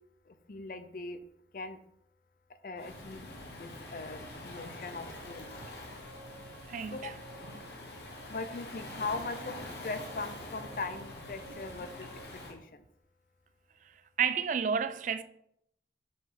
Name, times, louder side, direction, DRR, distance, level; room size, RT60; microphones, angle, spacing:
voice 1, 0.3-1.2 1.5-1.8 2.6-3.3 3.5-5.6 6.9-7.1 8.3-9.6 9.8-12.8, left 3 dB, 50° left, 0.5 m, -40 dB
Waves surf, 2.8-12.5, left 2 dB, 70° left, 1.3 m, -45 dB
sound 1, 4.9-12.2, right 3 dB, 10° left, 1.2 m, -55 dB
voice 2, 6.7-7.1 13.8-13.9 14.2-15.2, right 7 dB, 45° right, 0.3 m, -31 dB
5.7 x 4.8 x 4.8 m
head